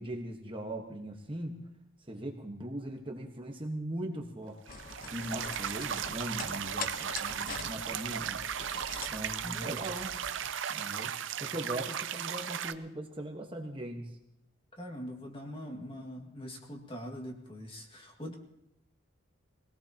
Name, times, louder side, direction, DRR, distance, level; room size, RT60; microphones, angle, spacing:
voice 1, 0.0-1.6 2.1-4.7 5.1-8.4 9.1-10.1 10.7-11.1 11.4-14.1, right 1 dB, 25° right, 2 dB, 1.3 m, -39 dB
sound 1, 4.7-10.5, left 4 dB, 40° left, 1.0 m, -44 dB
sound 2, 4.7-12.7, right 8 dB, 60° right, 0.6 m, -36 dB
voice 2, 9.4-9.8 14.8-18.3, equal, 25° left, 1 dB, 2.0 m, -42 dB
24.0 x 18.0 x 2.9 m, 0.82 s
head